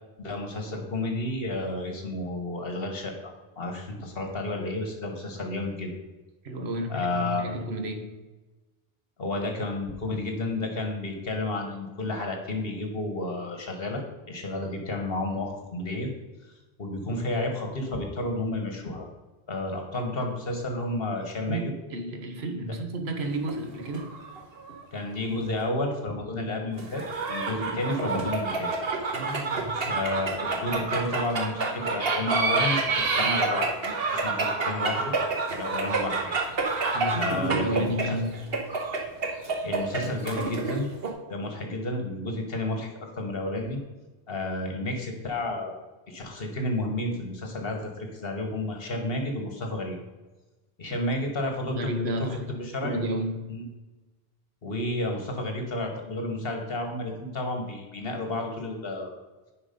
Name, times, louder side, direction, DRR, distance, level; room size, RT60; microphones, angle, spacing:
voice 1, 0.2-5.9 6.9-7.5 9.2-16.1 16.8-19.1 19.5-21.7 24.9-28.7 29.8-35.1 35.5-36.4 36.7-37.9 39.6-40.9 41.3-43.8 44.3-45.8 46.1-50.0 50.8-52.3 52.6-53.0 53.5-53.6 54.6-59.1, left 2 dB, 65° left, 3 dB, 1.6 m, -31 dB
voice 2, 6.4-8.2 21.5-24.1 29.1-29.9 36.9-38.6 50.9-51.1 51.7-52.5 52.8-53.6, right 1 dB, 80° right, 5 dB, 1.3 m, -32 dB
sound 1, 23.3-24.8 25.1-25.2 26.8-41.1, right 3 dB, 65° right, 1.4 m, -28 dB
10.0 x 4.6 x 5.2 m, 1.2 s
omnidirectional pair, 1.1 m